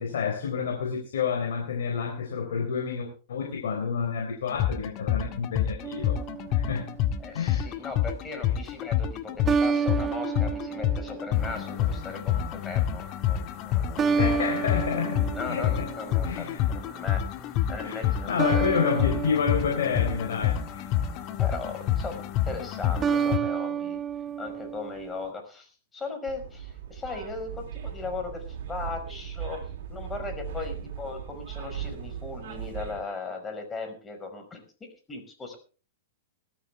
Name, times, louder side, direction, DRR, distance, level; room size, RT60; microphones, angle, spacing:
voice 1, 0.0-6.2 6.5-7.0 7.3-7.8 14.1-15.9 16.2-16.6 17.8-20.9, left 6 dB, 70° left, 3 dB, 4.0 m, -29 dB
sound 1, 4.5-23.4, left 10 dB, 40° left, 1.7 m, -28 dB
sound 2, 5.8-7.2 9.5-11.9 14.0-16.6 18.4-20.9 23.0-25.3, right 6 dB, 25° right, 0.8 m, -30 dB
voice 2, 7.2-14.2 15.3-16.5 16.8-18.7 21.4-24.0 24.4-28.4 28.7-34.6 35.1-35.6, left 4 dB, 15° left, 5 dB, 5.3 m, -38 dB
sound 3, 26.3-33.0, right 8 dB, 60° right, 4.3 m, -38 dB
19.5 x 13.0 x 3.5 m, 0.37 s
hypercardioid pair, 110°, 0 cm